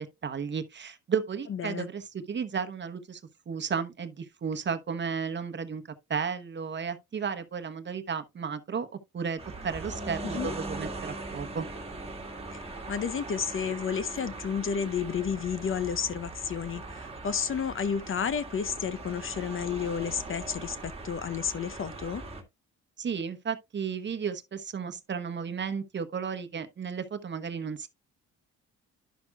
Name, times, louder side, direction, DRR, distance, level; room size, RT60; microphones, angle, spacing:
voice 1, 0.0-3.2 3.5-5.8 6.1-8.9 9.1-11.7 23.0-27.9, right 6 dB, 35° right, 1.0 m, -33 dB
voice 2, 1.5-1.9 10.2-10.5 12.5-22.2, left 7 dB, 45° left, 0.7 m, -31 dB
sound 1, 9.4-22.4, right 2 dB, 20° right, 1.7 m, -40 dB
11.5 x 6.0 x 2.3 m
cardioid pair, 90°, 30 cm